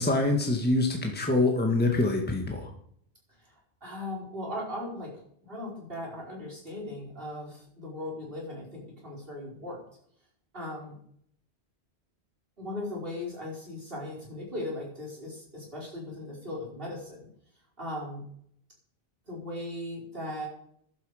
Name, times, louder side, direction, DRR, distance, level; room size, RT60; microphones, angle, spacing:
voice 1, 0.0-2.7, left 2 dB, 10° left, 2 dB, 1.6 m, -25 dB
voice 2, 3.8-5.1 5.4-9.8 10.5-11.0 12.6-17.3 17.8-18.2 19.3-20.5, left 1 dB, 55° right, -3 dB, 5.2 m, -38 dB
15.0 x 11.5 x 5.0 m, 0.67 s
omnidirectional pair, 1.2 m